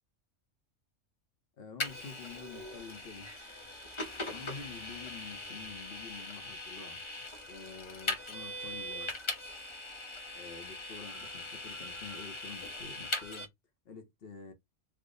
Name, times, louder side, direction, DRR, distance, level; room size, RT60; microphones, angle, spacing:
voice 1, 1.6-3.3 4.3-7.0 7.5-9.2 10.3-13.5 13.8-14.5, left 5 dB, 55° left, 0.9 m, -48 dB
Vehicle, 1.8-13.5, left 2 dB, 30° left, 0.6 m, -40 dB
3.5 x 2.1 x 3.7 m
omnidirectional pair, 1.3 m